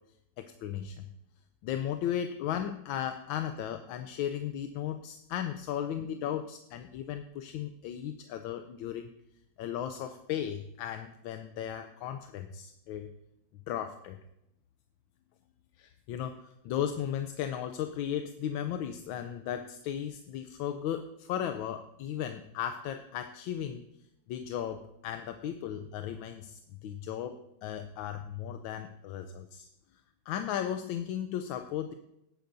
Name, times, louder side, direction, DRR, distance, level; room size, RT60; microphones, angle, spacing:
voice 1, 0.4-1.1 1.6-9.1 9.6-13.1 13.7-14.2 15.8-23.8 24.3-29.7 30.3-31.9, left 10 dB, 85° left, 7 dB, 1.4 m, -36 dB
18.0 x 9.3 x 2.6 m, 0.82 s
omnidirectional pair, 2.1 m